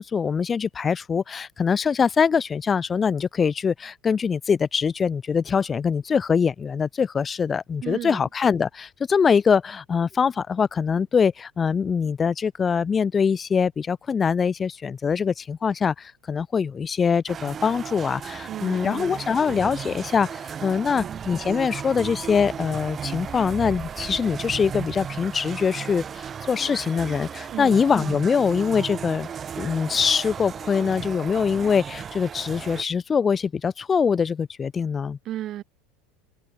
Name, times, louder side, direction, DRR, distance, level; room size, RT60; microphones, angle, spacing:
voice 1, 0.0-29.3 29.6-35.2, left 6 dB, 30° left, 2.6 m, -23 dB
voice 2, 7.8-8.3 18.5-19.2 19.5-19.8 20.9-21.2 27.5-27.8 35.2-35.6, right 13 dB, 50° right, 2.2 m, -35 dB
sound 1, 17.3-32.8, right 7 dB, 35° right, 1.6 m, -35 dB
hypercardioid pair, 90°, 0 cm